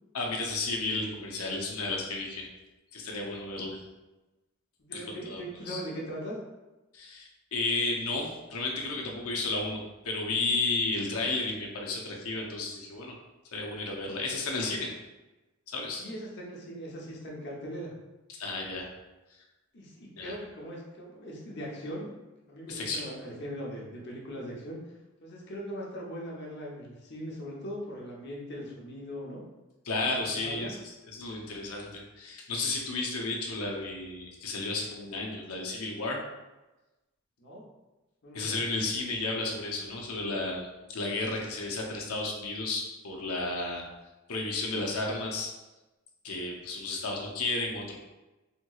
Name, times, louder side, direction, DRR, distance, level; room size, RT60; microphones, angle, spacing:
voice 1, 0.1-2.5 2.9-3.8 4.9-5.4 5.7-5.8 6.9-13.1 13.5-14.9 15.7-16.0 18.4-18.9 20.2-20.3 22.7-23.1 29.9-30.7 31.1-36.2 38.3-43.8 44.3-45.5 46.2-48.0, left 3 dB, 85° left, -1 dB, 0.7 m, -32 dB
voice 2, 4.8-6.4 16.0-17.9 19.7-22.2 22.5-24.8 25.2-29.4 30.0-30.7 37.4-37.6 38.2-38.6, equal, 50° left, -3 dB, 0.8 m, -40 dB
3.5 x 2.9 x 2.3 m, 1.1 s
head